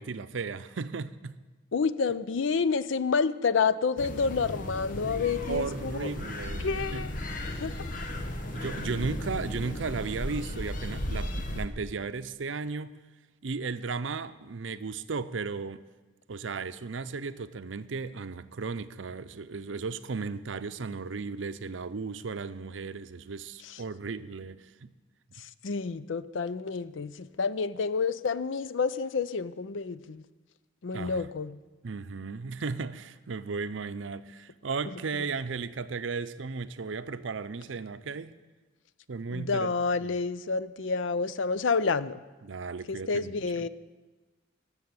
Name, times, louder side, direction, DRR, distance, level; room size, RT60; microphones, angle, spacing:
voice 1, 0.0-1.4 5.5-7.1 7.7-7.8 8.5-13.0 13.4-15.8 16.3-24.9 30.9-31.2 31.8-38.3 39.1-39.7 40.1-40.2 42.4-43.7, right 4 dB, 85° right, 0.6 m, -35 dB
voice 2, 1.7-6.1 6.6-7.1 7.5-7.8 23.6-23.8 25.4-30.2 30.8-31.6 39.3-42.2 42.9-43.7, left 5 dB, 85° left, 0.5 m, -29 dB
sound 1, 4.0-11.7, left 1 dB, 45° left, 1.3 m, -35 dB
14.5 x 6.9 x 9.6 m
head